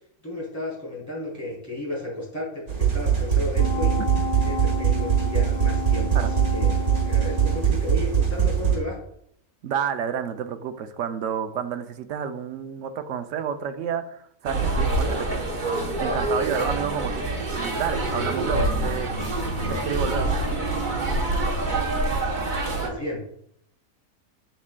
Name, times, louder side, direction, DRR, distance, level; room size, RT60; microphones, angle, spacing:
voice 1, 0.2-4.0 4.4-9.0 19.3-19.8 22.6-23.2, left 2 dB, 10° left, -5 dB, 2.8 m, -33 dB
sound 1, 2.7-8.8, right 8 dB, 85° right, 2.1 m, -22 dB
sound 2, 3.6-8.1 8.5-8.6, left 3 dB, 80° left, 2.3 m, -32 dB
voice 2, 9.6-17.2 17.5-19.1 19.7-20.3, right 7 dB, 65° right, 9 dB, 0.9 m, -30 dB
sound 3, 14.4-22.9, right 2 dB, 40° right, 1.1 m, -26 dB
7.3 x 7.0 x 2.2 m, 0.71 s
omnidirectional pair, 1.5 m